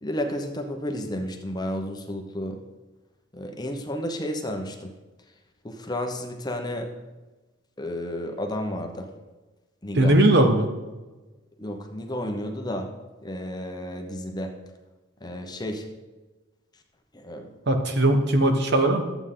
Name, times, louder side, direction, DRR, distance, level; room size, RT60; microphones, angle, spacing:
voice 1, 0.0-2.6 3.3-4.9 5.6-6.9 7.8-9.1 9.8-10.2 11.6-12.9 13.2-14.5 15.2-15.8 17.1-17.5, left 1 dB, 20° left, 4 dB, 0.9 m, -32 dB
voice 2, 9.9-10.7 17.7-19.0, right 1 dB, 55° right, 5 dB, 1.1 m, -19 dB
12.0 x 8.1 x 3.8 m, 1.2 s
head